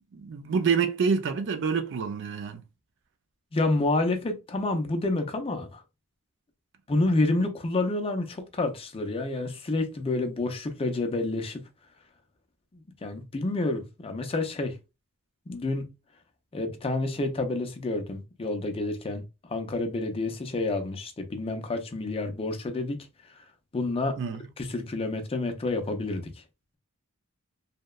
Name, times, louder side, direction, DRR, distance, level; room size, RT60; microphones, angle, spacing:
voice 1, 0.1-2.6 24.2-24.4, right 6 dB, 55° right, 0.4 m, -27 dB
voice 2, 3.5-5.8 6.9-11.6 12.7-14.8 15.5-15.9 16.5-19.2 19.5-23.0 23.7-24.2 24.6-26.3, left 2 dB, 25° left, 0.4 m, -29 dB
2.8 x 2.1 x 2.3 m
head